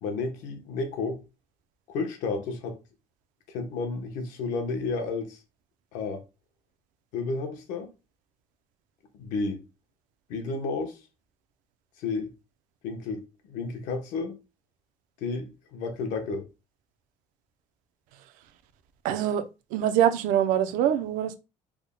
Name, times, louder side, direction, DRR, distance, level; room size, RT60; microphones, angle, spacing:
voice 1, 0.0-1.2 1.9-2.8 3.5-5.4 5.9-6.2 7.1-7.9 9.2-9.6 10.3-11.0 12.0-12.3 12.8-14.3 15.2-16.4, left 4 dB, 75° left, 0.9 m, -31 dB
voice 2, 19.0-19.4 19.7-21.4, right 10 dB, 80° right, 0.5 m, -24 dB
3.5 x 2.1 x 3.7 m
cardioid pair, 180°, 13 cm